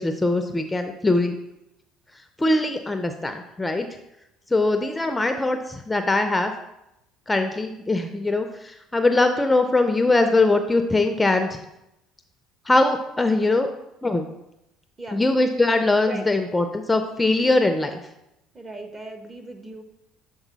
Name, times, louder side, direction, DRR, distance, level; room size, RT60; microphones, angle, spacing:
voice 1, 0.0-1.4 2.4-3.9 4.5-6.5 7.3-11.6 12.7-13.7 14.0-14.3 15.1-18.0, left 2 dB, 15° left, 7 dB, 0.5 m, -21 dB
voice 2, 18.5-19.8, right 1 dB, 25° right, 6 dB, 1.0 m, -37 dB
7.1 x 3.7 x 4.0 m, 0.87 s
supercardioid pair, 75°, 0 cm